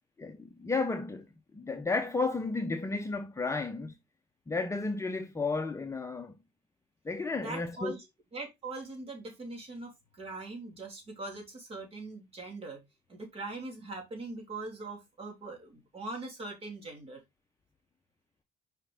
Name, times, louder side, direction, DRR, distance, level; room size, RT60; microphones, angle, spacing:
voice 1, 0.2-1.3 1.5-3.9 4.5-6.3 7.0-7.9, left 3 dB, 15° left, 0.7 m, -32 dB
voice 2, 7.4-8.0 8.3-12.8 13.1-17.2, right 3 dB, 35° right, 3.1 m, -41 dB
5.6 x 5.0 x 3.5 m
cardioid pair, 110°, 17 cm